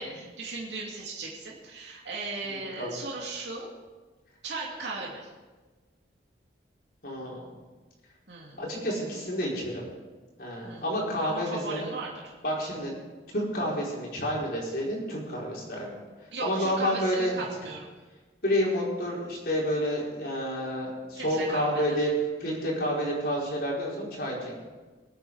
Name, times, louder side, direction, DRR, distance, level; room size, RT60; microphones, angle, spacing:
voice 1, 0.0-3.7 4.4-5.3 8.3-8.6 10.6-10.8 11.2-12.1 16.3-17.9 21.2-21.8, right 3 dB, 70° right, -4 dB, 2.5 m, -37 dB
voice 2, 7.0-7.6 8.6-9.9 10.4-11.9 12.4-12.9 13.3-15.9 16.4-17.4 18.4-22.1 22.4-24.6, equal, 55° left, -3 dB, 4.6 m, -29 dB
22.5 x 9.0 x 4.8 m, 1.3 s
head